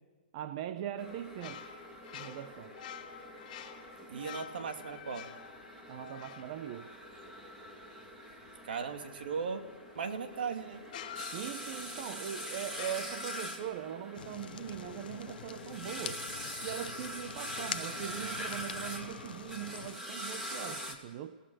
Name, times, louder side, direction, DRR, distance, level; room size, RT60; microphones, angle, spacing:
voice 1, 0.3-1.8 2.1-2.8 5.9-6.9 11.3-16.2 16.6-21.4, right 11 dB, 40° right, 0.9 m, -41 dB
sound 1, 1.0-20.9, equal, 10° right, 2.9 m, -44 dB
sound 2, 1.1-7.7 10.0-10.1 10.9-12.1 12.7-13.8, left 9 dB, 45° left, 4.1 m, -48 dB
voice 2, 4.1-5.3 8.6-9.7 9.9-10.9, right 6 dB, 70° right, 2.7 m, -37 dB
Fire, 14.1-20.0, left 9 dB, 65° left, 0.7 m, -45 dB
28.5 x 17.5 x 6.4 m
hypercardioid pair, 160°, 5 cm